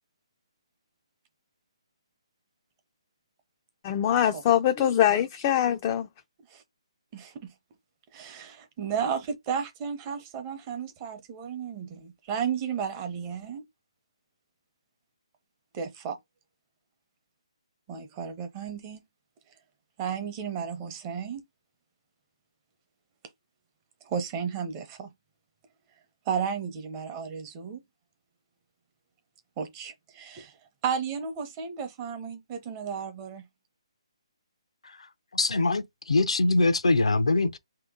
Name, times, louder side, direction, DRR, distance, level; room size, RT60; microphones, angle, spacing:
voice 1, 3.8-6.1, left 10 dB, 25° left, 0.4 m, -23 dB
voice 2, 7.1-7.5 8.1-13.6 15.7-16.2 17.9-19.0 20.0-21.4 24.0-25.1 26.3-27.8 29.6-30.5 30.8-33.4, right 7 dB, 25° right, 0.7 m, -33 dB
voice 3, 35.3-37.6, left 2 dB, 85° left, 0.6 m, -23 dB
3.3 x 2.9 x 3.6 m
hypercardioid pair, 155°, 3 cm